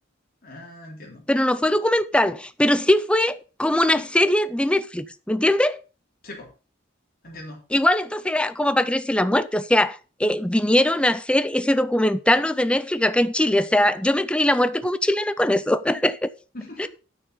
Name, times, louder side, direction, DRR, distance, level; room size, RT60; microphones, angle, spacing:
voice 1, 0.4-1.3 6.2-6.5 7.2-7.6 16.5-16.9, left 1 dB, 50° left, 3.4 m, -40 dB
voice 2, 1.3-5.8 7.7-16.3 16.8-16.9, left 1 dB, 5° left, 0.5 m, -21 dB
9.3 x 6.5 x 5.4 m
head